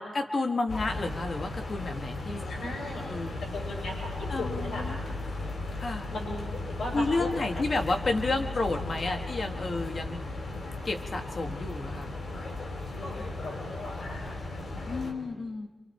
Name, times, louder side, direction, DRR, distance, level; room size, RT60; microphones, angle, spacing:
voice 1, 0.1-2.5 3.1-3.4 4.3-5.0 5.7-6.1 6.9-10.2 10.8-12.1 14.9-15.7, left 3 dB, 40° left, 5 dB, 1.6 m, -31 dB
sound 1, 0.7-15.1, left 2 dB, 60° left, 3.6 m, -36 dB
voice 2, 2.5-5.1 6.1-7.4 9.1-9.2 12.9-14.3 15.0-15.3, left 1 dB, 80° left, -2 dB, 6.8 m, -38 dB
27.5 x 26.0 x 4.5 m, 1.2 s
wide cardioid pair, 175°, 0 cm